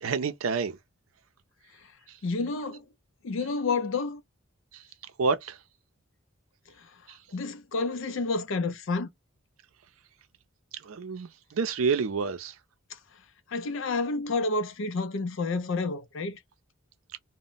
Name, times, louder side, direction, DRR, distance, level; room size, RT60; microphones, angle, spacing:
voice 1, 0.0-0.8 5.2-5.6 10.9-12.5, right 5 dB, 85° right, 0.5 m, -28 dB
voice 2, 2.2-2.8 3.2-4.2 6.8-7.0 7.3-9.1 12.9-13.0 13.5-16.4, left 3 dB, 65° left, 0.4 m, -30 dB
2.1 x 2.0 x 3.7 m
head